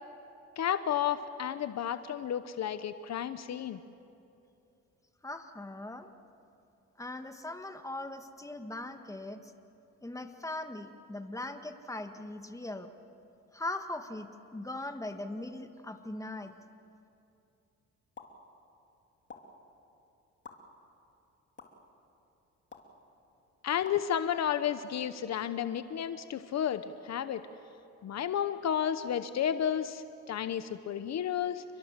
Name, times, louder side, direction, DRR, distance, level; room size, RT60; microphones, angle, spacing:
voice 1, 0.6-3.8 23.6-27.4 28.0-31.6, left 9 dB, 60° left, 11 dB, 1.0 m, -32 dB
voice 2, 5.2-6.1 7.0-9.5 10.0-12.9 13.5-16.5, left 2 dB, 10° left, 7 dB, 1.7 m, -40 dB
sound 1, 18.2-18.3 19.3-19.4 20.4-20.5 21.6-21.7 22.7-22.9 23.8-24.0, left 5 dB, 40° left, 3.0 m, -47 dB
29.5 x 22.5 x 7.5 m, 2.7 s
cardioid pair, 90°, 30 cm